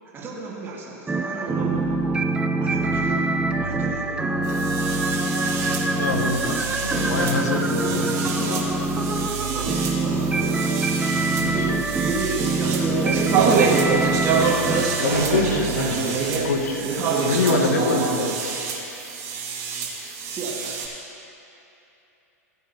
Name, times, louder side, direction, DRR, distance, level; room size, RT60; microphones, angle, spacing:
voice 1, 0.1-1.9 2.6-4.2 7.7-8.0 9.1-10.8 11.5-14.5 15.2-15.7 16.8-17.8 18.1-18.2 20.2-20.8, right 3 dB, 25° right, -5 dB, 2.2 m, -33 dB
sound 1, 1.1-15.0, right 2 dB, 10° right, 0.6 m, -25 dB
sound 2, 1.5-17.9, right 6 dB, 65° right, 0.7 m, -35 dB
sound 3, 4.4-20.9, right 5 dB, 45° right, 2.4 m, -27 dB
voice 2, 6.0-8.7 11.4-11.7 15.0-16.8 17.2-18.5, left 3 dB, 80° left, 3 dB, 1.4 m, -25 dB
17.5 x 8.0 x 3.0 m, 2.9 s
hypercardioid pair, 105°, 9 cm